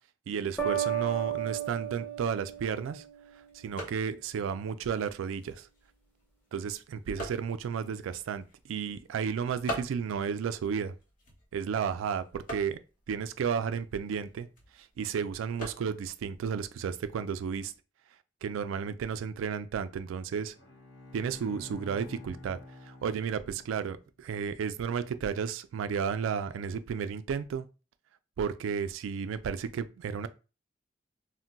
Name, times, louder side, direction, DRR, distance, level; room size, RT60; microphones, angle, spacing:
voice 1, 0.3-3.0 3.5-5.7 6.5-10.9 11.5-12.8 13.1-14.5 15.0-17.7 18.4-20.5 21.1-22.6 22.9-27.7 28.4-30.3, right 6 dB, 85° right, 0.3 m, -33 dB
sound 1, 0.6-3.4, right 9 dB, 10° left, 0.5 m, -33 dB
sound 2, 2.2-17.8, right 1 dB, 45° left, 0.9 m, -47 dB
Bowed string instrument, 20.5-24.1, left 2 dB, 70° left, 1.0 m, -49 dB
2.2 x 2.1 x 3.8 m
head